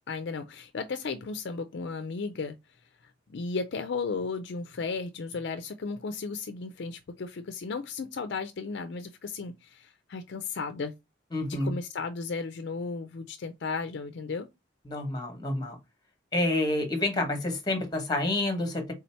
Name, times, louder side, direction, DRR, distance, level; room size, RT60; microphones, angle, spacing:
voice 1, 0.1-2.6 3.0-10.9 11.5-14.5, left 4 dB, 60° left, 0.4 m, -35 dB
voice 2, 11.3-11.7 14.9-15.8 16.3-18.9, left 2 dB, 20° left, 1.1 m, -28 dB
3.7 x 2.8 x 4.3 m
head